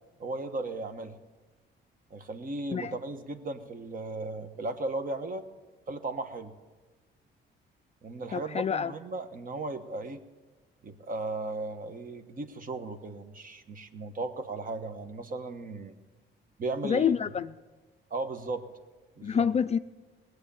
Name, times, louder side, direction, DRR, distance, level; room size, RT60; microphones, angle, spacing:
voice 1, 0.2-1.2 2.1-5.4 5.9-6.5 8.0-10.2 10.8-15.9 16.6-17.1 18.1-18.6 19.2-19.4, right 2 dB, 45° right, 1.2 m, -36 dB
voice 2, 8.3-8.9 16.8-17.5 19.2-19.8, left 7 dB, 35° left, 0.4 m, -27 dB
19.0 x 8.1 x 7.0 m
cardioid pair, 90°, 20 cm